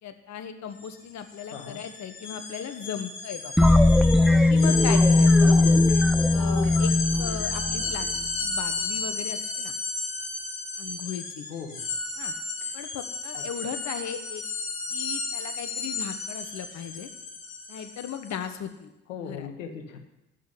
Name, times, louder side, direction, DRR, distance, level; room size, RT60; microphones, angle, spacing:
voice 1, 0.0-3.7 4.5-5.6 6.3-8.1 8.4-9.7 10.8-11.5 12.2-12.3 12.7-14.4 14.9-17.1 17.7-18.9 19.2-19.5, left 8 dB, 45° left, 8 dB, 1.3 m, -37 dB
sound 1, 0.7-0.9 1.2-18.4, left 3 dB, 60° left, 5.0 m, -33 dB
sound 2, 3.6-8.3, left 2 dB, ahead, 0.6 m, -19 dB
voice 2, 5.5-5.9 11.5-12.0 13.3-13.7 19.1-20.0, left 6 dB, 80° left, 4 dB, 1.5 m, -39 dB
13.5 x 6.3 x 9.9 m, 0.92 s
figure-of-eight pair, 50°, 38 cm